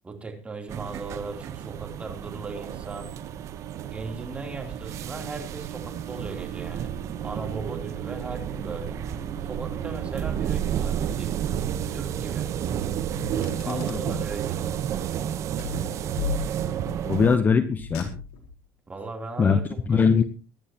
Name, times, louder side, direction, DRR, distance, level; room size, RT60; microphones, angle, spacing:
voice 1, 0.0-3.1 3.9-6.9 7.2-9.0 9.4-11.4 11.9-12.5 13.6-14.8 18.9-20.2, right 3 dB, 15° right, 3 dB, 3.4 m, -38 dB
sound 1, 0.7-17.4, right 9 dB, 45° right, 1.0 m, -31 dB
Car, 13.1-14.3 15.6-16.9 17.8-18.6, left 6 dB, 80° left, 4.3 m, -35 dB
voice 2, 17.0-18.1 19.4-19.6 19.9-20.2, left 6 dB, 25° left, 11 dB, 0.9 m, -21 dB
23.0 x 11.0 x 3.0 m, 0.35 s
cardioid pair, 130°, 7 cm